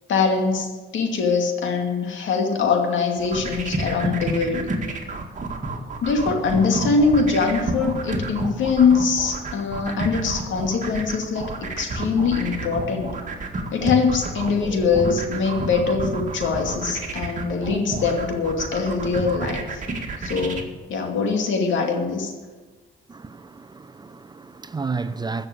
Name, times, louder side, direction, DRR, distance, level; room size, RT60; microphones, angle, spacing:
voice 1, 0.1-4.6 6.0-13.1 13.7-19.8 20.2-20.6 20.9-22.3, left 5 dB, 75° left, 2.4 m, -22 dB
sound 1, 3.2-20.6, right 2 dB, 40° right, 2.0 m, -29 dB
voice 2, 23.1-25.5, right 4 dB, 20° right, 0.7 m, -32 dB
14.5 x 6.7 x 8.6 m
cardioid pair, 90°, 20 cm